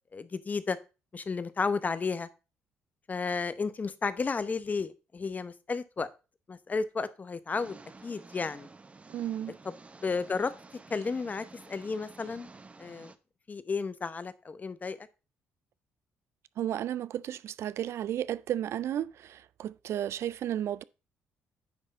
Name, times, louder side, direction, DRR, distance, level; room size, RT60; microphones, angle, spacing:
voice 1, 0.1-0.8 1.1-2.3 3.1-6.1 6.5-8.7 9.6-9.7 10.0-10.5 10.9-12.5 12.8-13.1 13.5-15.1, left 4 dB, 35° left, 0.8 m, -33 dB
sound 1, 7.5-13.2, right 3 dB, 25° right, 0.8 m, -52 dB
voice 2, 9.1-9.6 16.6-20.8, right 11 dB, 65° right, 0.3 m, -33 dB
9.6 x 3.6 x 5.2 m
supercardioid pair, 70°, 5 cm